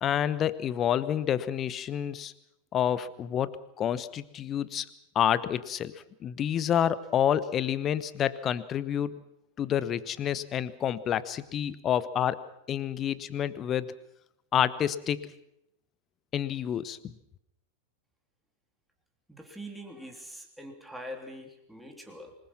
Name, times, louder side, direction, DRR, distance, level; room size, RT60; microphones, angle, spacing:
voice 1, 0.0-2.3 2.7-4.9 5.1-5.9 6.2-9.2 9.6-12.4 12.7-13.9 14.5-15.3 16.3-17.1, left 10 dB, 30° left, 16 dB, 1.1 m, -28 dB
voice 2, 19.3-22.4, equal, ahead, 2 dB, 3.4 m, -43 dB
25.5 x 21.0 x 5.9 m, 0.79 s
figure-of-eight pair, 90°, 0 cm